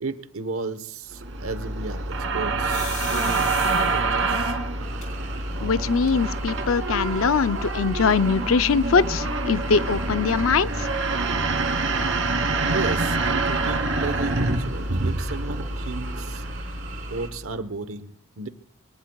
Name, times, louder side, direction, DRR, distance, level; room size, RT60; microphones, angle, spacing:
voice 1, 0.0-4.6 11.5-11.6 12.6-16.4 17.1-18.5, right 3 dB, 90° right, 1.1 m, -34 dB
sound 1, 1.1-17.5, right 2 dB, 65° right, 2.5 m, -26 dB
sound 2, 2.6-4.2 5.0-5.1 5.5-5.6 5.9-6.5, left 6 dB, 35° left, 4.6 m, -37 dB
sound 3, 4.8-17.3, right 4 dB, 40° right, 4.8 m, -42 dB
voice 2, 5.6-10.9, left 5 dB, 75° left, 0.5 m, -22 dB
23.0 x 19.5 x 2.4 m
head